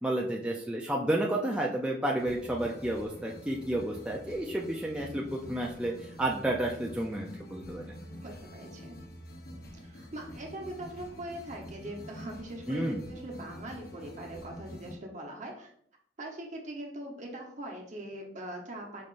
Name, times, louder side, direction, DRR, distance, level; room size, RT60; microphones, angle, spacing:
voice 1, 0.0-5.9 6.2-7.9 12.7-13.0, right 1 dB, 5° right, -2 dB, 0.3 m, -31 dB
sound 1, 2.2-14.9, equal, 60° left, 0.8 m, -47 dB
voice 2, 8.2-9.0 9.8-15.7 16.2-19.0, right 1 dB, 45° right, 0 dB, 0.9 m, -41 dB
5.2 x 3.5 x 2.5 m, 0.65 s
head